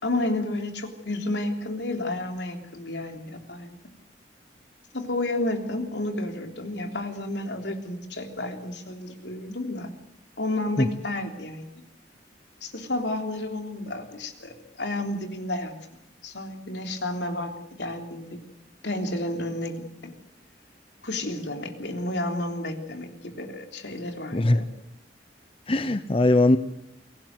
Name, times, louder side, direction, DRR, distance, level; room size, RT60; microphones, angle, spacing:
voice 1, 0.0-3.8 4.9-9.9 10.4-11.7 12.6-15.7 16.2-18.4 18.8-20.1 21.0-24.7, left 1 dB, 75° left, 4 dB, 3.5 m, -31 dB
voice 2, 24.3-24.6 25.7-26.6, left 2 dB, 30° left, 11 dB, 0.8 m, -20 dB
23.5 x 18.0 x 7.9 m, 0.85 s
head